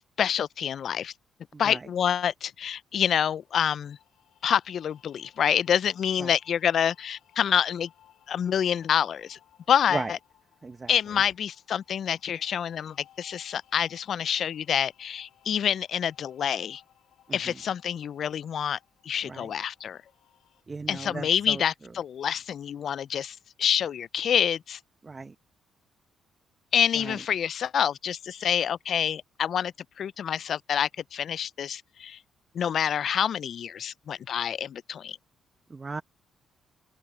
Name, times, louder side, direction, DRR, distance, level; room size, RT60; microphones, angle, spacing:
voice 1, 0.2-1.1 1.6-4.0 4.4-7.9 8.3-9.4 9.7-10.2 10.9-16.8 17.3-18.8 19.0-20.0 20.9-24.8 26.7-32.2 32.5-35.2, left 8 dB, 60° left, 0.3 m, -27 dB
voice 2, 1.5-1.9 6.2-6.3 9.9-10.1 10.6-10.9 17.3-17.5 19.2-19.5 20.7-21.6 25.0-25.3 27.0-27.2 35.7-36.0, right 4 dB, 30° right, 0.8 m, -36 dB
sound 1, 3.3-20.6, left 11 dB, 80° left, 6.0 m, -62 dB
open air
cardioid pair, 90°, 0 cm